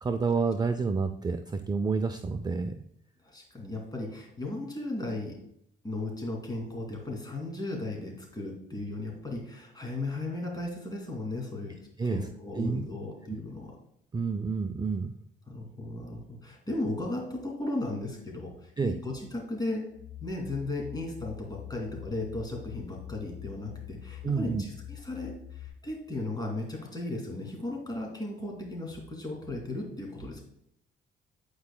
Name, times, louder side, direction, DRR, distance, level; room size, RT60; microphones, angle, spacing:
voice 1, 0.0-2.7 12.0-12.3 12.6-12.8 14.1-15.1 18.8-19.0 24.2-24.6, right 4 dB, 20° right, 8 dB, 0.4 m, -29 dB
voice 2, 3.2-5.3 5.8-11.7 12.0-13.7 15.5-19.8 20.2-30.4, left 2 dB, 20° left, -1 dB, 2.6 m, -36 dB
sound 1, 19.9-25.7, left 12 dB, 40° left, 1.4 m, -45 dB
9.4 x 4.8 x 2.2 m, 0.74 s
cardioid pair, 90°, 20 cm